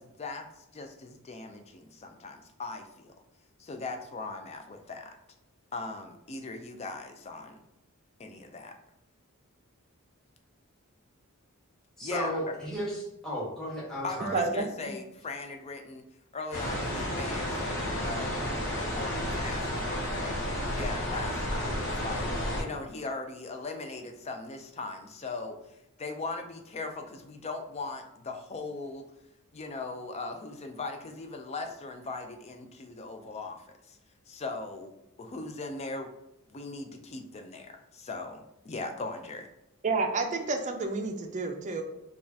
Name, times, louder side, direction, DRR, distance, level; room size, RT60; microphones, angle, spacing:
voice 1, 0.0-3.1 3.6-5.2 5.7-7.6 8.2-8.8 12.0-12.5 14.0-16.0 16.3-18.4 18.7-29.0 29.5-34.0 34.3-34.9 35.2-36.1 36.5-39.5, left 3 dB, 30° left, 5 dB, 0.4 m, -39 dB
voice 2, 12.0-14.3, equal, 5° left, -6 dB, 1.2 m, -34 dB
voice 3, 14.3-14.9 39.8-41.8, right 3 dB, 35° right, 5 dB, 0.4 m, -30 dB
sound 1, 16.5-22.6, left 1 dB, 65° left, 0.9 m, -32 dB
5.0 x 2.4 x 2.7 m, 0.87 s
head